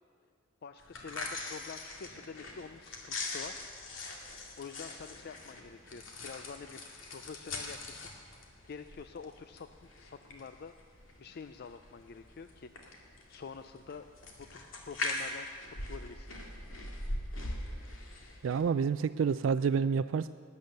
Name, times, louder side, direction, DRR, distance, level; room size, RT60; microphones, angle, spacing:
voice 1, 0.6-3.6 4.6-6.8 7.1-8.1 8.7-9.7 10.0-10.7 11.2-14.0 14.4-16.3, left 5 dB, 55° left, 9 dB, 0.4 m, -47 dB
sound 1, 0.8-18.6, left 2 dB, 90° left, 2.1 m, -42 dB
voice 2, 18.4-20.3, right 6 dB, 70° right, 11 dB, 0.3 m, -28 dB
18.5 x 9.5 x 6.6 m, 2.3 s
head